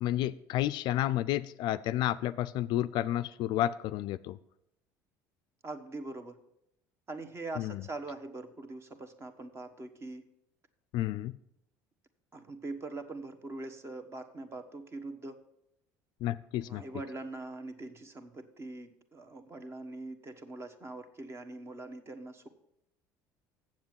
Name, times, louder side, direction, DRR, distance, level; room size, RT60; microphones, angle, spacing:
voice 1, 0.0-4.4 7.6-7.8 10.9-11.3 16.2-16.8, left 13 dB, 65° left, 16 dB, 0.4 m, -31 dB
voice 2, 5.6-6.4 7.1-10.2 12.3-15.4 16.6-22.5, right 2 dB, 30° right, 7 dB, 1.3 m, -42 dB
7.5 x 7.3 x 7.8 m, 0.80 s
supercardioid pair, 80°, 8 cm